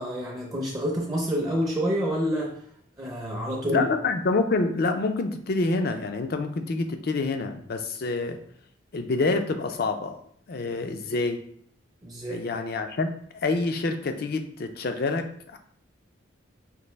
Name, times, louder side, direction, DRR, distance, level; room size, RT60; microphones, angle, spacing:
voice 1, 0.0-2.6 3.0-3.9 12.0-12.4, equal, 20° right, -2 dB, 0.6 m, -28 dB
voice 2, 3.7-8.4 8.9-10.2 10.5-11.4 12.3-15.3 15.5-15.6, left 3 dB, 50° left, 7 dB, 0.4 m, -27 dB
5.2 x 2.6 x 3.1 m, 0.63 s
head